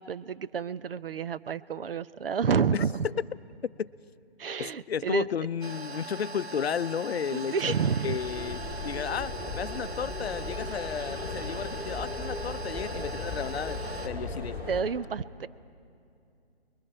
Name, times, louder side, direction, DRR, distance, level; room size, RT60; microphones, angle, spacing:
voice 1, 0.0-3.1 4.4-5.3 7.3-8.2 14.7-15.5, right 6 dB, 65° right, 16 dB, 0.6 m, -29 dB
voice 2, 4.6-7.7 8.0-8.6 8.8-14.6, left 7 dB, 75° left, 16 dB, 0.6 m, -33 dB
sound 1, 5.6-14.1, right 2 dB, 90° right, 1.4 m, -41 dB
sound 2, 8.2-14.8, left 2 dB, 10° right, 4.5 m, -37 dB
28.0 x 22.0 x 4.4 m, 2.5 s
hypercardioid pair, 160°, 31 cm